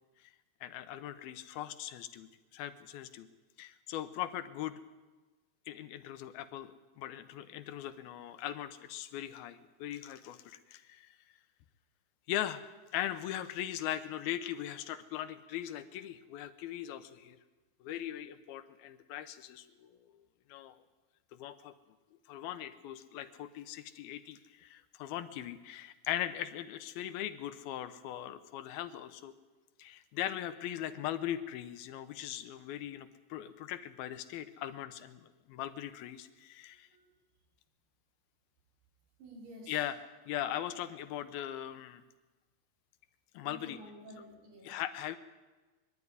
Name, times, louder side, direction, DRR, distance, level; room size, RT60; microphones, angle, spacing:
voice 1, 0.6-3.3 3.6-4.8 5.7-11.1 12.3-12.6 12.9-17.4 17.8-20.1 20.5-20.8 21.3-21.7 22.3-29.3 29.8-36.9 39.7-42.0 43.3-43.8 44.6-45.2, left 12 dB, 75° left, 10 dB, 2.6 m, -40 dB
voice 2, 39.2-39.8 43.4-44.8, equal, 80° right, -1 dB, 6.1 m, -51 dB
22.5 x 12.0 x 9.7 m, 1.2 s
omnidirectional pair, 4.6 m